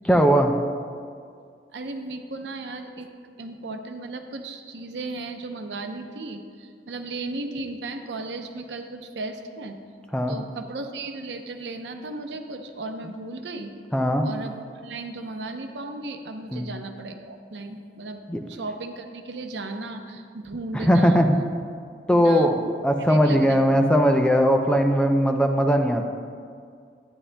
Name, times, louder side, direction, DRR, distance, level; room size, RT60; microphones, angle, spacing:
voice 1, 0.0-0.6 10.1-10.4 13.9-14.3 16.5-16.7 18.3-18.4 20.7-21.3 22.1-26.0, equal, 5° left, 4 dB, 0.4 m, -19 dB
voice 2, 1.7-3.1 3.4-9.8 10.3-13.7 14.2-21.2 22.1-22.5 23.0-23.8, right 2 dB, 85° right, 5 dB, 0.7 m, -35 dB
12.5 x 9.8 x 2.2 m, 2.2 s
head